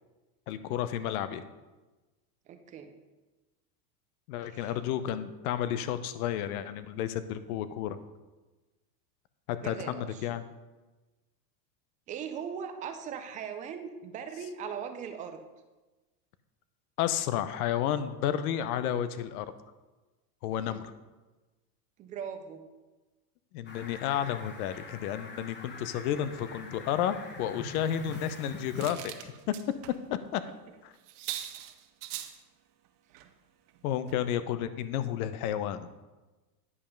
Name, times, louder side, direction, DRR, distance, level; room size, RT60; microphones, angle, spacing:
voice 1, 0.5-1.4 4.3-8.0 9.5-10.4 17.0-19.5 20.4-20.8 23.5-29.1 30.3-30.4 30.8-30.9 33.8-35.9, left 10 dB, 65° left, 13 dB, 0.8 m, -31 dB
voice 2, 2.5-2.9 4.4-4.8 9.6-10.3 12.1-15.4 20.7-20.8 22.0-22.6, right 7 dB, 20° right, 7 dB, 0.3 m, -39 dB
Fowl, 23.7-28.9, left 3 dB, 20° left, 1.0 m, -44 dB
sound 1, 28.1-30.0 30.3-30.5 30.7-30.8 31.1-32.4 33.1-33.3 33.7-33.8 34.1-34.2, right 12 dB, 65° right, 0.9 m, -42 dB
9.8 x 5.4 x 5.1 m, 1.2 s
supercardioid pair, 130°, 49 cm